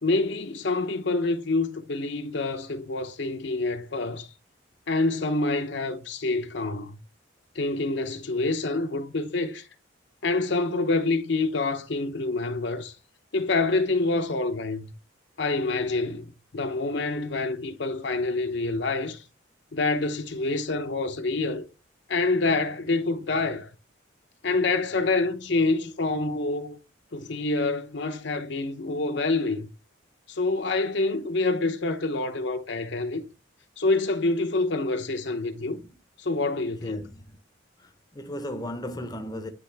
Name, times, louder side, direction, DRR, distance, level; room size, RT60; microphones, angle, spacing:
voice 1, 0.0-4.3 4.9-7.0 7.5-9.7 10.2-12.9 13.3-14.9 15.4-19.2 19.7-21.7 22.1-23.7 24.4-26.8 27.1-29.7 30.3-33.2 33.8-35.8 36.2-37.0, left 3 dB, 60° left, 0.8 m, -27 dB
voice 2, 36.8-37.4 37.8-39.5, left 1 dB, 20° left, 0.7 m, -36 dB
9.9 x 3.7 x 3.4 m
head